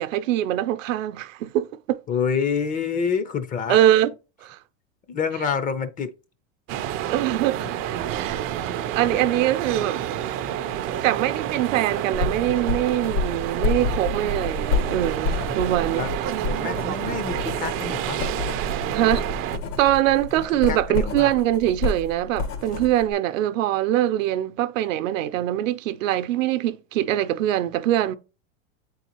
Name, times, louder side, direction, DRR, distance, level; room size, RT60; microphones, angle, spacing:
voice 1, 0.0-2.0 3.7-4.1 4.4-4.6 7.0-7.7 8.1-8.4 8.9-10.0 11.0-16.1 18.9-19.4 19.8-28.2, right 13 dB, 80° right, 0.7 m, -23 dB
voice 2, 2.1-3.8 5.1-6.1 7.1-7.2 9.0-9.2 15.9-16.1 16.4-18.3 20.7-21.3, left 6 dB, 20° left, 0.5 m, -27 dB
sound 1, 6.7-19.6, right 10 dB, 35° right, 0.4 m, -29 dB
sound 2, 12.1-23.1, left 4 dB, 80° left, 1.9 m, -29 dB
8.2 x 4.0 x 2.9 m
supercardioid pair, 130°, 38 cm